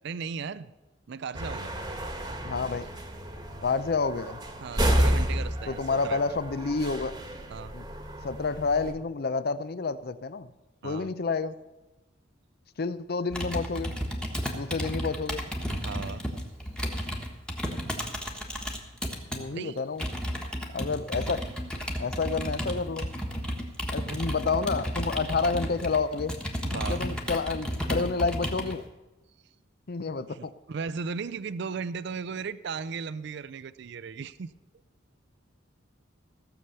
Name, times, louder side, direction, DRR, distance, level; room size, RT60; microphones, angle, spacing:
voice 1, 0.0-0.7 1.1-1.7 4.6-6.4 7.5-7.7 10.8-11.1 15.7-16.3 19.5-19.8 24.1-24.3 26.6-27.0 30.2-34.5, right 5 dB, 60° right, 16 dB, 0.4 m, -36 dB
sound 1, 1.3-8.9, equal, 20° right, 1.3 m, -31 dB
voice 2, 2.4-2.9 3.6-4.4 5.7-7.2 7.7-7.9 8.2-10.5 10.8-11.6 12.8-13.9 14.5-15.4 19.3-20.1 20.7-21.4 22.0-23.1 23.9-26.4 26.9-28.8 29.9-30.5, left 4 dB, 50° left, 14 dB, 0.5 m, -29 dB
Computer keyboard, 13.3-19.4 20.0-28.8, equal, 5° left, 1.4 m, -33 dB
15.5 x 7.0 x 6.7 m, 1.1 s
head